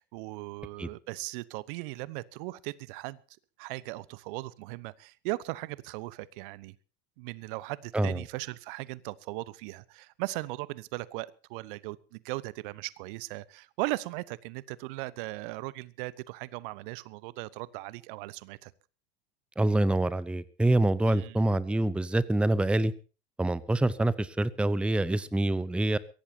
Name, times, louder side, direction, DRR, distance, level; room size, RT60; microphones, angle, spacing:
voice 1, 0.0-3.2 3.6-6.8 7.2-18.7 21.1-21.5, right 20 dB, 55° right, 20 dB, 1.1 m, -38 dB
voice 2, 19.6-22.9 23.4-26.0, right 1 dB, 5° right, 19 dB, 0.7 m, -26 dB
23.0 x 17.0 x 2.8 m, 0.35 s
figure-of-eight pair, 80°, 32 cm